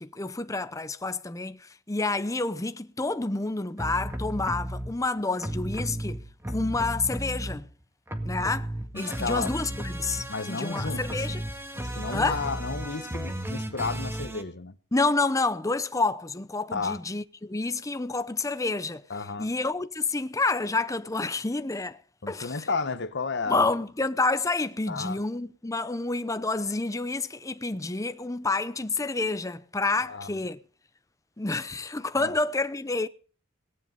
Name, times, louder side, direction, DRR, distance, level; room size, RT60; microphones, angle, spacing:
voice 1, 0.0-7.7 8.2-11.4 12.1-12.4 14.9-19.0 19.4-22.0 22.3-22.7 23.5-30.6 31.4-33.1, left 3 dB, 15° left, 0.7 m, -29 dB
sound 1, 3.8-4.9 5.4-7.8 8.1-14.4, right 1 dB, 10° right, 1.9 m, -34 dB
voice 2, 8.9-9.5 10.3-11.4 11.8-14.8 16.7-17.0 19.1-19.5 22.2-23.7 24.9-25.2 30.1-30.4 32.2-32.3, left 4 dB, 55° left, 1.1 m, -32 dB
18.5 x 10.5 x 5.4 m
head